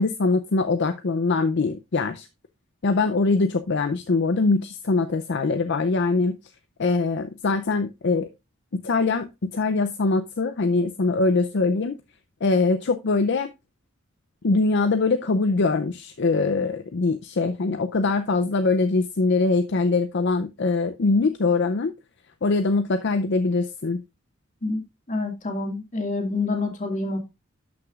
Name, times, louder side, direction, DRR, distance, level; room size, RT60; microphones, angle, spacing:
voice 1, 0.0-2.3 2.8-6.4 6.8-8.3 8.7-12.0 12.4-13.5 14.4-21.9 22.4-24.0, left 3 dB, 60° left, 9 dB, 0.6 m, -23 dB
voice 2, 25.1-27.2, left 3 dB, 40° left, 4 dB, 2.0 m, -27 dB
12.5 x 6.0 x 2.4 m, 0.23 s
head